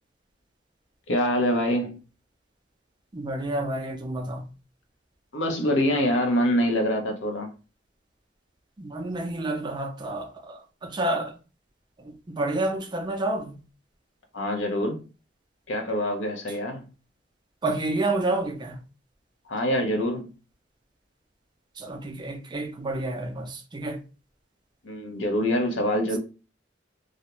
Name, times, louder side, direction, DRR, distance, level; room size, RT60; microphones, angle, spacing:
voice 1, 1.1-2.0 5.3-7.5 14.3-15.0 15.7-16.8 19.5-20.3 24.8-26.2, equal, 90° left, 0.7 m, -25 dB
voice 2, 3.1-4.4 8.8-11.3 12.3-13.5 17.6-18.7 21.8-24.0, right 2 dB, 25° right, 0.4 m, -29 dB
2.4 x 2.0 x 2.9 m
head